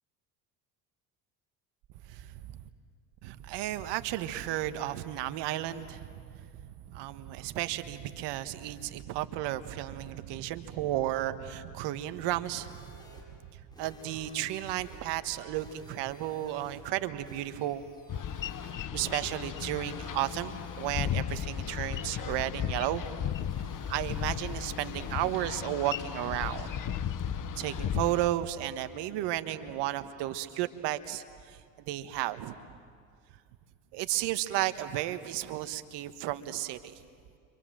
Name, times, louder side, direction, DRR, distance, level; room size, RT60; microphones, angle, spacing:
voice 1, 2.1-2.6 3.2-12.9 13.8-17.8 18.4-18.6 18.9-23.0 23.9-26.7 27.6-31.6 31.9-32.6 33.9-36.9, right 14 dB, 70° right, 11 dB, 1.4 m, -33 dB
sound 1, 12.6-28.7, right 2 dB, 10° left, 7.2 m, -52 dB
Boat Water vehicle, 18.1-28.3, left 9 dB, 45° left, 1.3 m, -35 dB
30.0 x 25.5 x 7.7 m, 2.2 s
hypercardioid pair, 65°, 43 cm